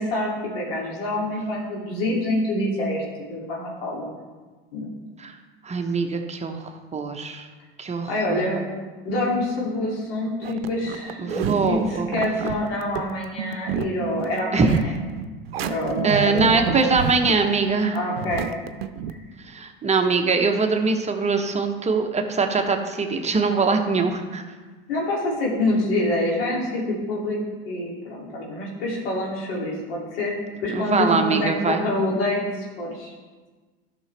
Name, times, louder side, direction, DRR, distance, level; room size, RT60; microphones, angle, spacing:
voice 1, 0.0-3.0 3.3-4.1 4.7-4.9 8.1-8.6 9.0-15.0 15.6-17.0 17.9-18.5 24.9-30.3 30.6-33.1, left 1 dB, 80° left, -4 dB, 2.8 m, -26 dB
voice 2, 5.6-7.4 7.8-8.4 11.2-12.1 14.5-14.8 16.0-18.0 19.5-24.4 30.7-31.8, right 4 dB, 25° right, 4 dB, 0.9 m, -22 dB
sound 1, 10.4-19.1, right 8 dB, 90° right, 0.6 m, -30 dB
12.0 x 6.0 x 3.3 m, 1.4 s
hypercardioid pair, 85°, 29 cm